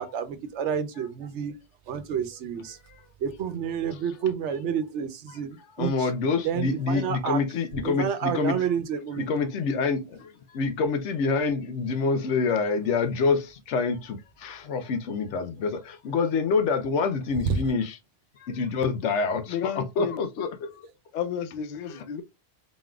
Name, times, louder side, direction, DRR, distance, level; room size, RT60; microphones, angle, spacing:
voice 1, 0.0-1.5 1.9-2.8 3.2-6.1 6.4-7.4 7.8-9.3 17.5-17.6, right 8 dB, 80° right, 1.0 m, -29 dB
voice 2, 5.8-8.6 9.2-18.0 18.4-20.7 21.9-22.1, left 4 dB, 85° left, 1.0 m, -27 dB
voice 3, 19.5-20.2 21.1-22.2, left 8 dB, 55° left, 0.5 m, -32 dB
4.1 x 3.7 x 2.3 m
omnidirectional pair, 1.2 m